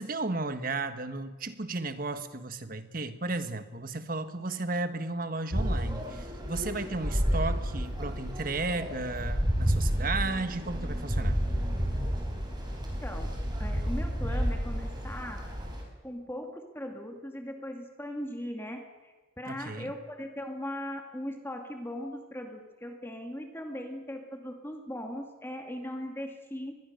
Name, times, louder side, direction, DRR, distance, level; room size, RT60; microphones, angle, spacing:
voice 1, 0.0-11.4 19.5-19.9, right 3 dB, 45° right, 10 dB, 1.4 m, -34 dB
sound 1, 5.5-15.8, equal, 20° right, 4.6 m, -31 dB
voice 2, 13.6-15.4 16.0-26.7, left 1 dB, 10° left, 4 dB, 2.2 m, -39 dB
24.5 x 20.5 x 6.6 m, 1.3 s
head